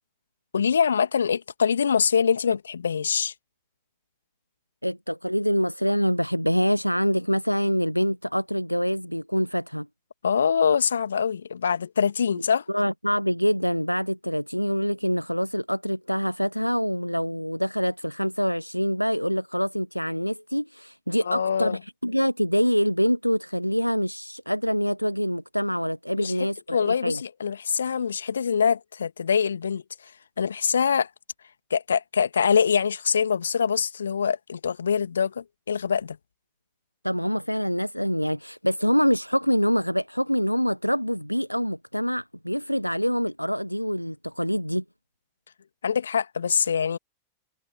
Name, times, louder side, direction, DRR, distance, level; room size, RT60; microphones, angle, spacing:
voice 1, 0.5-3.3 10.2-12.6 21.3-21.8 26.2-26.3 26.7-30.1 30.4-31.1 31.7-36.2 45.8-47.0, left 6 dB, 70° left, 1.9 m, -24 dB
voice 2, 4.8-9.9 12.7-27.2 37.0-44.8, equal, 90° left, 0.7 m, -25 dB
figure-of-eight pair, 90°, 0 cm